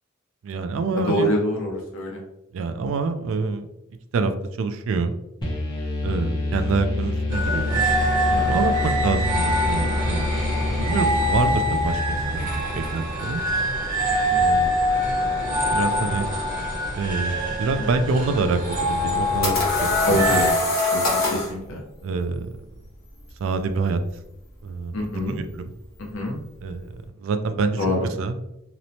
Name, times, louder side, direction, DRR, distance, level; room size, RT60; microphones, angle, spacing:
voice 1, 0.4-1.3 2.5-3.7 4.1-4.3 4.6-5.1 6.0-7.9 8.3-10.4 10.8-13.4 14.4-14.8 15.7-16.3 17.0-20.2 22.0-22.5 23.4-24.0 24.6-24.9 25.2-25.7 26.6-26.9 27.2-27.8 28.2-28.3, right 4 dB, 75° right, 8 dB, 0.3 m, -26 dB
voice 2, 0.9-2.2 12.7-13.0 14.3-14.5 17.7-17.9 20.0-20.5 20.9-21.8 24.9-25.4 26.0-26.4 27.7-28.1, left 1 dB, 80° left, -1 dB, 0.6 m, -25 dB
sound 1, 5.4-13.1, left 2 dB, 20° left, 0.6 m, -27 dB
sound 2, 7.3-20.5, equal, 40° right, 0.8 m, -24 dB
sound 3, 19.0-21.5, left 2 dB, 50° left, 1.0 m, -23 dB
2.9 x 2.0 x 2.6 m, 0.85 s
head